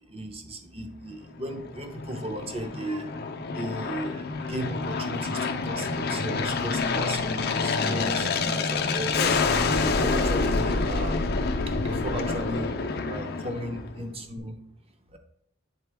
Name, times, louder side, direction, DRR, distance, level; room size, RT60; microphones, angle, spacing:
voice 1, 0.1-3.1 3.5-9.3 9.8-11.2 11.8-12.8 13.1-14.6 15.1-15.2, equal, 30° right, 5 dB, 0.7 m, -36 dB
Aircraft, 1.4-14.1, left 4 dB, 50° left, 0.5 m, -27 dB
8.1 x 3.8 x 3.4 m, 0.76 s
head